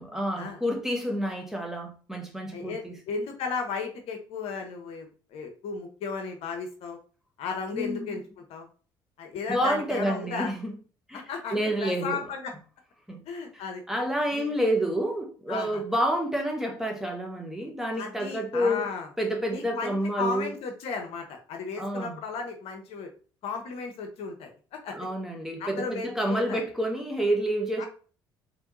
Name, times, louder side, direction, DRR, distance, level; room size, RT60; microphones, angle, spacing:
voice 1, 0.0-2.9 7.7-8.2 9.5-10.7 11.1-11.2 11.5-12.2 13.1-13.2 13.5-13.6 13.9-18.9 19.2-20.5 21.8-22.1 24.9-27.9, equal, 5° right, 1.1 m, -29 dB
voice 2, 2.5-7.0 7.4-8.7 9.2-10.5 11.1-12.5 13.3-13.8 14.3-14.5 15.5-15.8 17.9-19.1 19.5-23.1 23.4-25.1 25.6-26.6 27.8-27.9, left 5 dB, 60° left, 0.8 m, -35 dB
4.5 x 2.9 x 2.6 m
figure-of-eight pair, 55°, 12 cm